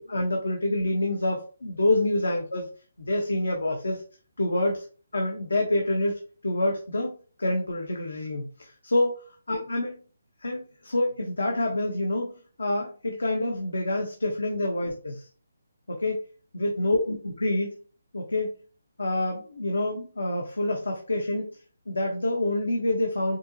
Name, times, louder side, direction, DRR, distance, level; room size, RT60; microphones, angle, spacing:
voice 1, 0.0-2.7 3.0-4.0 4.4-4.8 5.1-9.2 9.5-9.9 10.4-12.3 12.6-15.3 15.9-16.2 16.5-17.7 18.1-18.5 19.0-21.5 21.9-23.4, left 1 dB, 85° left, 1 dB, 1.0 m, -27 dB
5.1 x 3.0 x 2.8 m, 0.39 s
hypercardioid pair, 155°, 0 cm